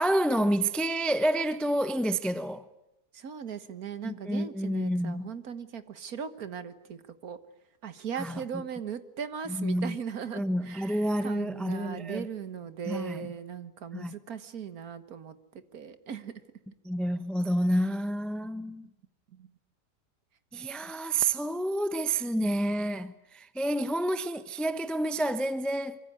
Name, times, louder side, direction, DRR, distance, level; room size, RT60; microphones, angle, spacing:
voice 1, 0.0-2.6 4.0-5.3 8.2-8.4 9.5-10.0 10.3-12.3 12.9-13.3 13.9-14.1 16.8-18.9 20.5-26.0, right 1 dB, ahead, 0.6 m, -29 dB
voice 2, 3.1-7.4 7.8-16.3 19.3-19.5, right 7 dB, 70° right, 1.9 m, -38 dB
25.0 x 24.0 x 9.7 m
omnidirectional pair, 1.6 m